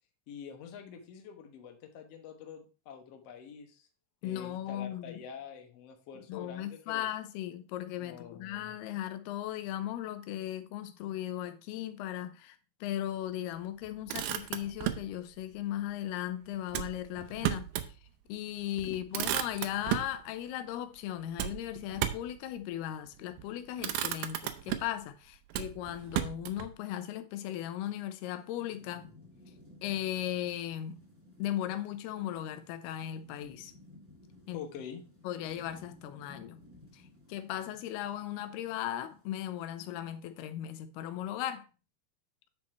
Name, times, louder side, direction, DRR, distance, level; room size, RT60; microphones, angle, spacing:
voice 1, 0.3-3.9 4.2-7.1 8.0-8.8 18.8-19.0 34.5-35.0, left 7 dB, 60° left, 1.6 m, -46 dB
voice 2, 4.2-5.2 6.3-17.7 18.3-29.1 29.8-31.0 31.4-33.7 34.5-34.6 35.2-36.6 36.9-37.0 37.3-41.7, left 12 dB, 90° left, 2.7 m, -37 dB
Motor vehicle (road), 13.8-15.1 16.7-17.9 18.3-18.4 18.8-20.2 21.4-22.4 23.2-23.5 23.8-25.0 25.5-26.7, right 12 dB, 80° right, 2.2 m, -34 dB
Thunderstorm / Rain, 28.2-40.4, left 2 dB, 20° right, 0.4 m, -58 dB
9.7 x 4.2 x 4.4 m
omnidirectional pair, 4.5 m